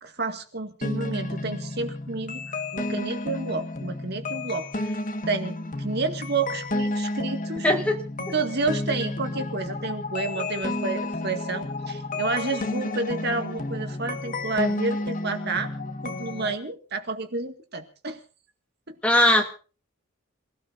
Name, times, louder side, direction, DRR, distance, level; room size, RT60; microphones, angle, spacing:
voice 1, 0.0-5.0 5.3-7.7 8.3-15.7 16.0-18.2, right 3 dB, 50° right, 7 dB, 2.0 m, -30 dB
sound 1, 0.8-16.5, left 2 dB, 40° left, 1.7 m, -31 dB
voice 2, 7.6-8.0 8.3-8.4 19.0-19.4, left 1 dB, 5° left, 3 dB, 2.5 m, -20 dB
28.0 x 17.0 x 2.7 m, 0.36 s
head